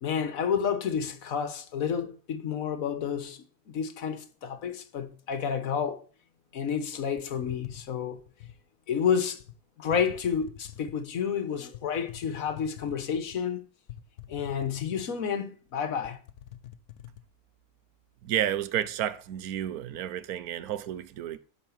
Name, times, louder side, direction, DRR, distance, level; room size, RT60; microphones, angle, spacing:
voice 1, 0.0-6.0 6.5-8.2 8.9-9.4 9.8-13.6 14.3-16.2, left 7 dB, 70° left, 1.5 m, -30 dB
Microphone Scratch Sound, 7.2-8.6 9.4-9.6 9.9-11.1 11.7-13.4 13.9-15.3 15.7-15.8 16.0-17.2, left 11 dB, 85° left, 1.2 m, -46 dB
voice 2, 18.2-21.4, right 11 dB, 80° right, 1.2 m, -31 dB
10.5 x 4.8 x 7.1 m
omnidirectional pair, 1.6 m